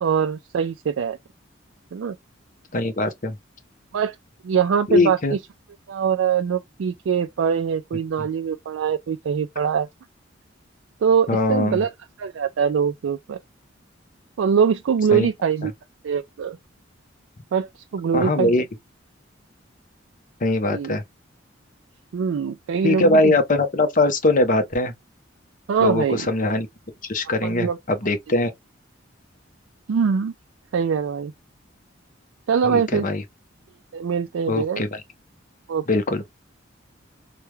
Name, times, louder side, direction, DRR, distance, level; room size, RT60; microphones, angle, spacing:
voice 1, 0.0-1.2 1.9-2.2 3.9-4.2 4.4-5.4 5.9-9.9 11.0-11.9 12.2-13.4 14.4-15.7 16.0-16.6 17.5-18.6 20.7-20.9 22.1-23.4 25.7-26.3 27.4-27.8 29.9-30.3 30.7-31.3 32.5-33.1 33.9-34.8 35.7-35.9, right 7 dB, 90° right, 0.4 m, -23 dB
voice 2, 2.7-3.4 4.9-5.4 11.3-11.8 15.1-15.3 15.6-15.7 18.1-18.6 20.4-21.0 22.8-24.9 25.8-26.7 27.1-28.5 32.7-33.2 34.5-35.0 35.9-36.3, left 2 dB, 45° left, 0.7 m, -21 dB
3.3 x 2.2 x 3.1 m
head